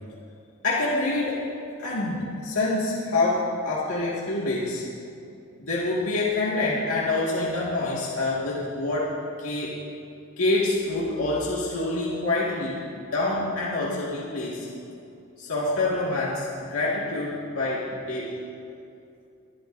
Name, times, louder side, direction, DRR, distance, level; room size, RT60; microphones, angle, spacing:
voice 1, 0.6-1.5 1.8-4.8 5.6-9.8 10.4-14.7 15.4-18.3, left 2 dB, 80° left, -7 dB, 1.9 m, -26 dB
22.5 x 12.0 x 2.6 m, 2.6 s
head